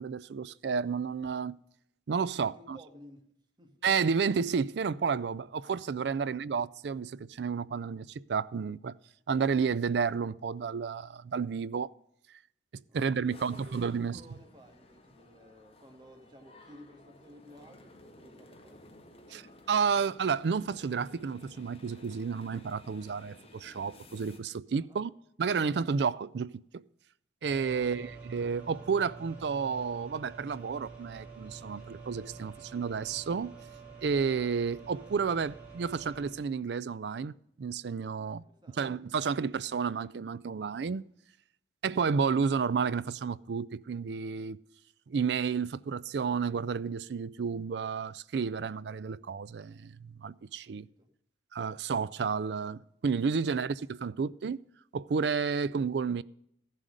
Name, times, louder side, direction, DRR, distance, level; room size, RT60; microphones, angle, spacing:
voice 1, 0.0-1.6 2.1-2.8 3.8-8.9 9.3-11.9 12.9-14.2 19.3-19.4 19.7-25.1 25.4-26.8 27.4-33.5 34.0-38.4 38.8-41.0 41.8-44.6 45.1-50.9 51.5-54.6 54.9-56.2, right 5 dB, 70° right, 0.4 m, -31 dB
voice 2, 2.3-3.3 3.6-3.9 6.0-6.3 12.9-18.9 24.8-25.0 27.7-28.2 38.2-39.0 50.6-51.1 53.4-53.6, equal, 25° right, 1.5 m, -55 dB
sound 1, 13.3-24.4, left 1 dB, 35° left, 1.7 m, -55 dB
sound 2, 27.4-36.3, right 4 dB, 10° right, 3.0 m, -48 dB
14.0 x 7.6 x 5.0 m
head